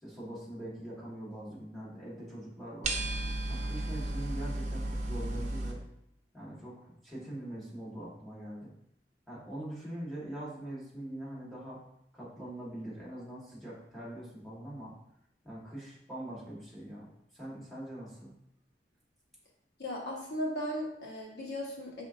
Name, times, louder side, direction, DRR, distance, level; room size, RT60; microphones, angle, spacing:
voice 1, 0.0-3.0 3.5-5.8 6.3-8.7 9.3-11.8 12.1-14.9 15.4-17.1 17.3-18.3, right 1 dB, ahead, -7 dB, 1.5 m, -43 dB
sound 1, 2.8-5.7, right 1 dB, 45° right, 0.6 m, -34 dB
voice 2, 19.8-22.0, equal, 70° left, -3 dB, 1.2 m, -36 dB
5.0 x 3.5 x 2.6 m, 0.76 s
head